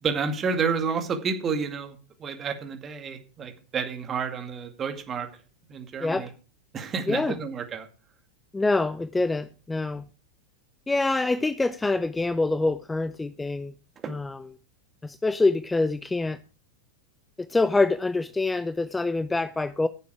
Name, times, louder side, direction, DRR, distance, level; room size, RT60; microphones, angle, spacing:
voice 1, 0.0-5.3 5.7-6.3 6.7-7.9 14.0-14.1, right 5 dB, 25° right, 2.2 m, -30 dB
voice 2, 6.0-6.3 7.1-7.4 8.5-10.0 10.9-13.7 14.1-14.5 15.0-16.4 17.5-19.9, left 3 dB, 10° left, 0.5 m, -25 dB
15.0 x 6.9 x 4.8 m
figure-of-eight pair, 90°, 0 cm